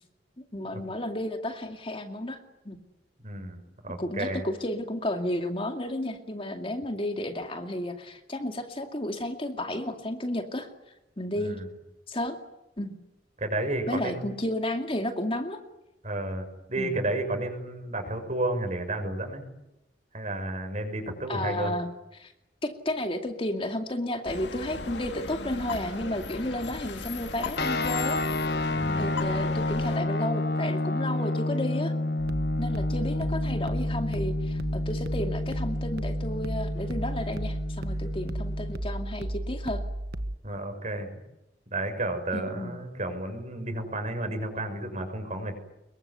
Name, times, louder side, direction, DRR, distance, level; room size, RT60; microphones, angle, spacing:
voice 1, 0.5-2.4 2.6-2.8 4.0-10.7 11.2-11.6 12.1-12.4 12.8-13.0 13.9-15.6 16.8-17.0 21.3-21.9 22.1-22.3 22.6-28.2 29.0-31.9 32.6-39.8 42.3-42.7, left 1 dB, 30° left, 5 dB, 2.4 m, -32 dB
voice 2, 3.2-4.4 11.4-11.7 13.4-14.2 16.0-19.4 20.1-21.7 28.7-29.2 40.4-41.1 41.7-45.5, right 1 dB, 40° right, 6 dB, 6.5 m, -32 dB
sound 1, 24.3-30.0, left 3 dB, 75° left, 2.2 m, -37 dB
sound 2, 27.6-38.8, left 2 dB, 60° left, 1.6 m, -30 dB
sound 3, 32.2-40.4, right 1 dB, 60° right, 1.5 m, -33 dB
25.5 x 23.0 x 9.6 m, 0.92 s
head